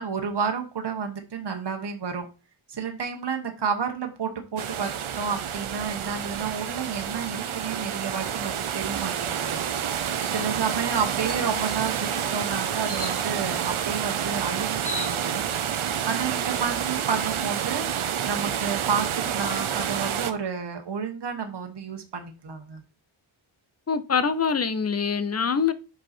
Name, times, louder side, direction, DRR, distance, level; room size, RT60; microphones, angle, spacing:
voice 1, 0.0-2.3 2.7-9.6 10.3-15.4 16.1-17.9 18.2-22.8, right 6 dB, 60° right, 1.2 m, -31 dB
sound 1, 4.6-20.3, right 8 dB, 85° right, 0.7 m, -29 dB
sound 2, 10.2-10.4 10.8-10.9 11.3-11.8 12.8-13.2 14.3-14.4 14.7-15.6, left 2 dB, 80° left, 1.9 m, -36 dB
voice 2, 23.9-25.7, left 6 dB, 35° left, 0.5 m, -24 dB
5.5 x 5.4 x 4.3 m
wide cardioid pair, 110°, 48 cm